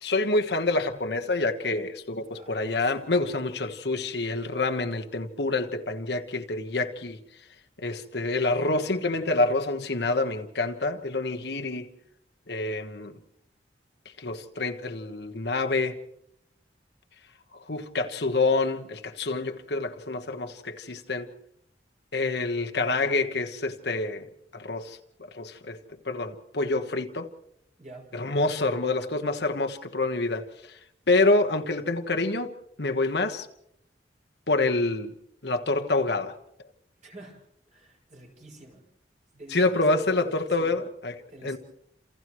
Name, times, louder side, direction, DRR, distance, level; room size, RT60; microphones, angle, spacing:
voice 1, 0.0-7.2 7.8-11.9 12.5-13.1 14.2-16.0 17.7-21.3 22.1-24.3 24.5-25.0 25.3-27.3 28.1-30.5 31.1-33.5 34.5-35.1 35.4-36.4 39.5-41.1 41.4-41.6, left 2 dB, 70° left, 1.3 m, -27 dB
voice 2, 2.3-3.3 27.8-28.1 37.0-38.9 39.3-40.8 41.3-41.6, right 1 dB, 45° right, 6.5 m, -48 dB
30.0 x 28.0 x 3.2 m
head